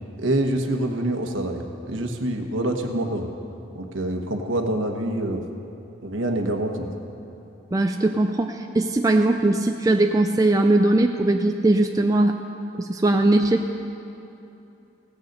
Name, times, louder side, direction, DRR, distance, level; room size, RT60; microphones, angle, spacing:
voice 1, 0.2-3.3 3.7-5.4 6.0-7.0, right 1 dB, 65° right, 3 dB, 1.2 m, -26 dB
voice 2, 7.7-12.4 12.8-13.8, right 2 dB, 15° right, 4 dB, 0.3 m, -20 dB
17.0 x 6.7 x 8.0 m, 2.9 s
head